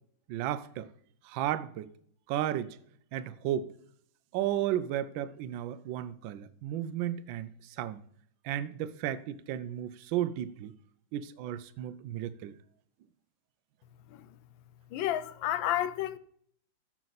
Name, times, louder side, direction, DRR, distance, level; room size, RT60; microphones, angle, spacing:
voice 1, 0.3-0.9 1.2-1.9 2.3-2.8 3.1-3.7 4.3-8.0 8.4-10.7 11.1-12.6, right 11 dB, 85° right, 1.3 m, -34 dB
voice 2, 14.9-16.2, left 12 dB, 85° left, 1.4 m, -31 dB
14.5 x 6.0 x 4.0 m
omnidirectional pair, 2.1 m